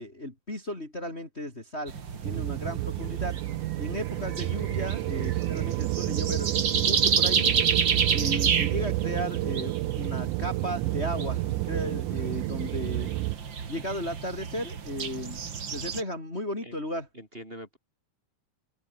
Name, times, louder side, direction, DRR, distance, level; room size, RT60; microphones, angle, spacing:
voice 1, 0.0-2.0 2.2-3.4 3.8-7.5 8.1-13.2 13.7-17.1, left 1 dB, 15° left, 4.6 m, -35 dB
sound 1, 1.9-16.0, right 6 dB, 40° right, 2.3 m, -31 dB
sound 2, 2.2-13.4, right 21 dB, 85° right, 1.8 m, -30 dB
voice 2, 17.1-17.8, equal, 15° right, 5.2 m, -44 dB
omnidirectional pair, 4.1 m